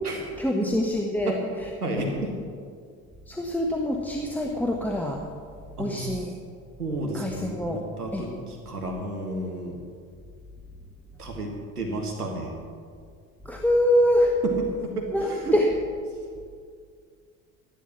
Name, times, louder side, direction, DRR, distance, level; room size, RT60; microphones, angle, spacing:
voice 1, 0.4-1.7 3.3-5.2 5.8-6.3 7.1-7.8 8.1-8.2 13.4-14.3 15.1-15.7, left 1 dB, 5° left, 0 dB, 1.3 m, -25 dB
voice 2, 1.8-2.3 5.8-6.2 6.8-9.8 11.2-12.5 14.8-15.6, right 1 dB, 90° right, 0 dB, 1.6 m, -32 dB
12.5 x 11.5 x 5.9 m, 2.1 s
figure-of-eight pair, 60°, 44 cm